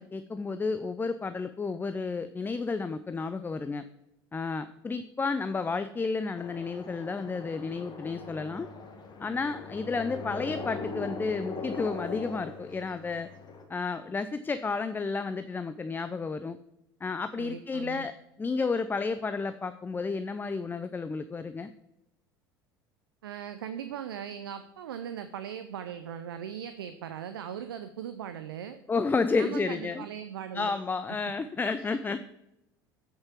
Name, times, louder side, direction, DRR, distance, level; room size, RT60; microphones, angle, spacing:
voice 1, 0.0-3.8 4.3-8.7 9.2-13.3 13.7-16.6 17.0-18.1 18.4-21.7 28.9-30.1 30.5-32.2, left 4 dB, 15° left, 11 dB, 0.4 m, -31 dB
sound 1, 6.3-13.6, left 3 dB, 35° left, 1.6 m, -40 dB
voice 2, 17.4-18.1 23.2-28.8 29.3-30.7 31.8-31.9, right 9 dB, 80° right, 10 dB, 0.5 m, -39 dB
8.1 x 6.6 x 4.5 m, 0.87 s
hypercardioid pair, 70°, 12 cm